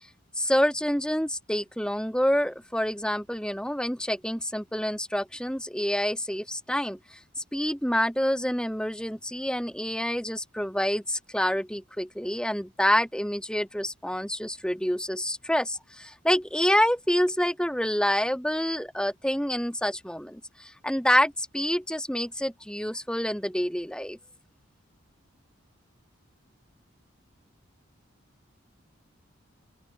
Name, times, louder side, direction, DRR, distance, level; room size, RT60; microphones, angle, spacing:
voice 1, 0.4-7.2 7.5-24.2, equal, 5° left, 2.9 m, -27 dB
open air
head